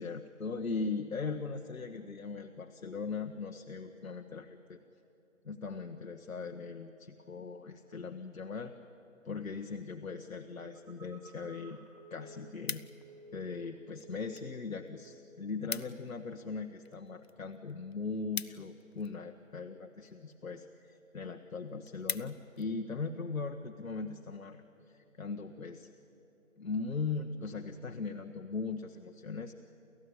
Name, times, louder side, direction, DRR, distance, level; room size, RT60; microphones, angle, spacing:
voice 1, 0.0-4.8 5.4-8.7 9.2-11.8 12.1-12.8 13.3-25.9 26.6-29.5, left 4 dB, 75° left, 5 dB, 1.3 m, -39 dB
Telephone, 10.7-13.8 14.0-14.7 15.1-15.4, right 1 dB, 30° right, 2.5 m, -55 dB
sound 1, 11.5-11.6 11.9-13.3 14.0-14.5 14.8-14.9 15.2-15.3 15.5-16.1 16.5-19.3 20.0-20.4 20.9-21.0 21.3-21.4 21.7-22.7 23.2-23.4, left 5 dB, 50° left, 0.6 m, -42 dB
30.0 x 13.5 x 9.6 m, 3.0 s
figure-of-eight pair, 170°, 41 cm